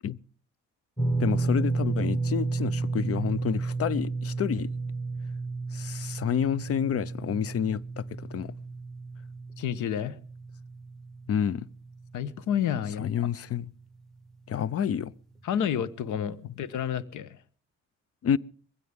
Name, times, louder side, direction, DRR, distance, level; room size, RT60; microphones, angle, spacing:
sound 1, 1.0-13.2 13.5-13.7 15.4-15.5, right 3 dB, ahead, 2.0 m, -32 dB
voice 1, 1.2-4.7 5.7-8.5 11.3-11.7 13.0-13.7 14.5-15.1 18.2-18.4, left 8 dB, 50° left, 0.7 m, -29 dB
voice 2, 9.6-10.2 12.1-13.1 15.4-17.4, left 9 dB, 80° left, 1.1 m, -30 dB
22.0 x 16.5 x 3.6 m
cardioid pair, 90°, 30 cm